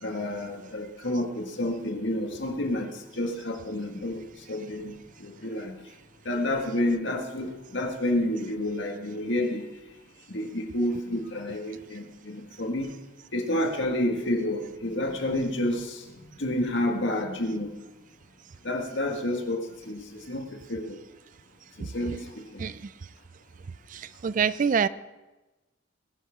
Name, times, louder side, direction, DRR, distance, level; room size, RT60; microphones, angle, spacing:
voice 1, 0.0-4.2 4.5-5.8 6.3-9.7 10.3-12.9 13.3-17.8 18.6-21.0 21.8-22.7, left 1 dB, 65° left, 2 dB, 1.9 m, -30 dB
voice 2, 24.2-24.9, right 6 dB, 40° right, 17 dB, 0.3 m, -24 dB
20.5 x 10.5 x 3.7 m, 1.1 s
head